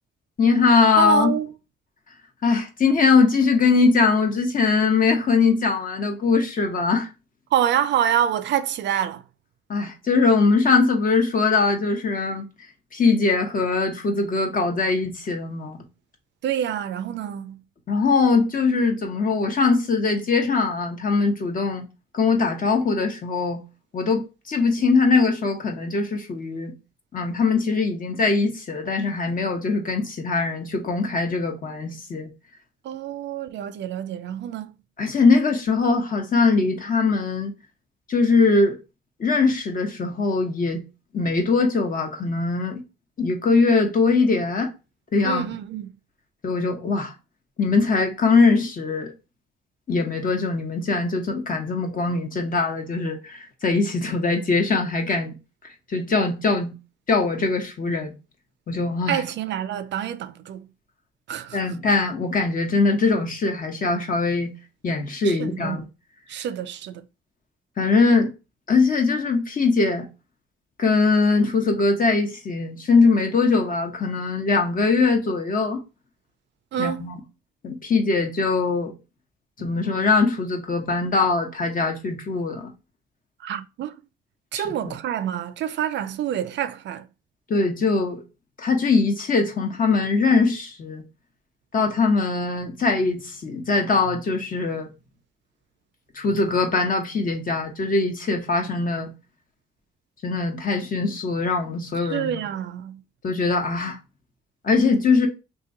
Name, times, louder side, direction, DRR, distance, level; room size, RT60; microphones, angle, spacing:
voice 1, 0.4-1.3 2.4-7.1 9.7-12.4 12.9-15.8 17.9-21.8 22.1-23.6 23.9-26.7 27.1-32.3 35.0-37.5 38.1-38.8 39.2-40.8 41.1-42.8 43.2-44.7 45.1-45.5 46.4-47.1 47.6-49.1 49.9-55.3 55.9-56.7 57.1-58.1 58.7-59.2 61.5-64.5 64.8-65.8 67.8-68.3 68.7-70.1 70.8-75.8 76.8-77.2 77.6-78.9 79.6-82.7 84.5-84.9 87.5-88.2 88.6-91.0 91.7-94.9 96.1-99.1 100.2-102.4 103.2-104.0 104.6-105.3, left 4 dB, 45° left, 1.0 m, -21 dB
voice 2, 1.0-1.5 7.5-9.2 16.4-17.6 32.8-34.7 45.2-46.0 59.1-60.7 61.3-61.6 65.2-65.9 66.3-67.0 76.7-77.1 79.6-79.7 83.4-84.0 84.5-87.1 102.0-103.0, right 10 dB, 65° right, 0.4 m, -27 dB
2.9 x 2.6 x 3.8 m
cardioid pair, 90°, 20 cm